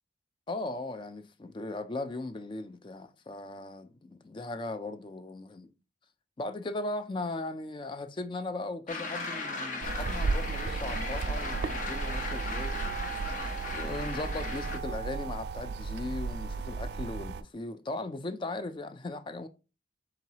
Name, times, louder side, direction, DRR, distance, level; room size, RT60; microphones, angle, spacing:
voice 1, 0.5-5.7 6.4-12.8 13.6-19.5, left 2 dB, 25° left, 0.4 m, -38 dB
sound 1, 8.9-14.8, left 3 dB, 45° left, 0.8 m, -37 dB
sound 2, 9.8-17.4, right 4 dB, 60° right, 0.3 m, -34 dB
4.4 x 3.8 x 2.8 m
head